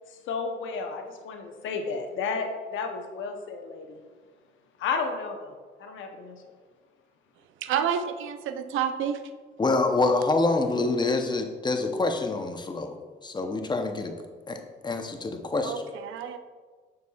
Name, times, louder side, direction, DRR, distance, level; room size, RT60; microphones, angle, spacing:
voice 1, 0.3-4.0 4.8-5.5 5.8-6.4, left 5 dB, 80° left, 4 dB, 0.8 m, -32 dB
voice 2, 7.6-9.2 15.6-16.4, right 8 dB, 80° right, 9 dB, 0.5 m, -29 dB
voice 3, 9.6-12.9 13.2-14.1 14.5-15.7, left 3 dB, 20° left, 5 dB, 0.7 m, -26 dB
6.9 x 6.4 x 2.3 m, 1.5 s
cardioid pair, 90°, 20 cm